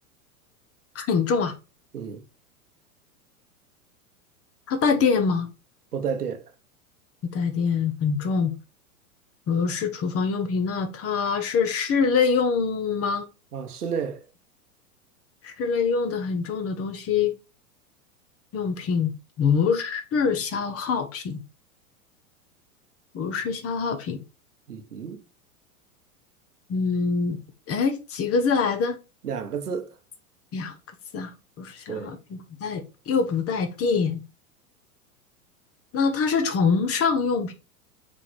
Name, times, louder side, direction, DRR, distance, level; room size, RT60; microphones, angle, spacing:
voice 1, 0.9-1.5 4.7-5.5 7.3-8.5 9.5-13.3 15.4-17.4 18.5-19.1 19.4-21.4 23.1-24.2 26.7-27.4 27.7-29.0 30.5-30.7 31.1-34.2 35.9-37.5, left 5 dB, 30° left, 1.3 m, -24 dB
voice 2, 5.9-6.5 13.5-14.2 24.7-25.2 29.2-30.0 31.9-32.1, right 6 dB, 85° right, 1.3 m, -31 dB
6.7 x 3.7 x 4.3 m
hypercardioid pair, 100°, 44 cm